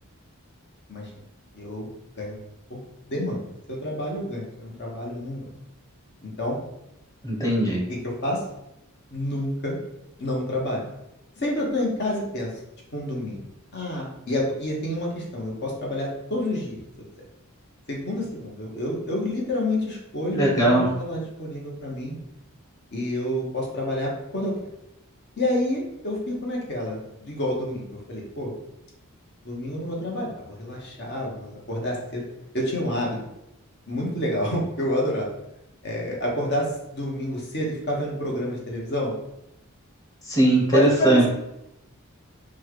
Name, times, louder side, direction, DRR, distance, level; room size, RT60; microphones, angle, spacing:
voice 1, 1.5-1.9 2.2-2.4 2.7-2.8 3.1-5.5 6.2-6.6 7.9-8.4 9.1-9.7 10.2-10.9 11.4-12.5 12.9-13.4 13.7-16.8 17.9-22.1 22.9-24.5 25.4-28.5 29.4-32.2 32.5-33.2 33.9-35.3 35.8-39.1 40.7-41.3, left 1 dB, 50° left, -2 dB, 1.2 m, -28 dB
voice 2, 7.2-7.8 20.3-20.9 40.3-41.3, right 1 dB, 15° left, -3 dB, 1.1 m, -19 dB
4.3 x 2.4 x 4.6 m, 0.86 s
head